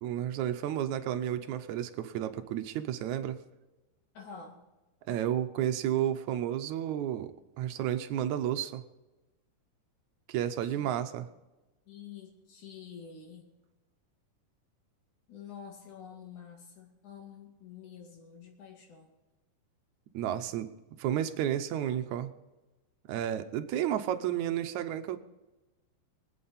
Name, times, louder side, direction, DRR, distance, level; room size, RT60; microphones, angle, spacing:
voice 1, 0.0-3.4 5.1-8.8 10.3-11.3 20.1-20.7 21.0-22.3 23.1-25.2, right 11 dB, 70° right, 9 dB, 1.9 m, -32 dB
voice 2, 4.1-4.6 10.6-10.9 11.9-13.5 15.3-19.1, left 7 dB, 60° left, 2 dB, 3.4 m, -48 dB
23.5 x 8.7 x 4.2 m, 1.1 s
omnidirectional pair, 3.9 m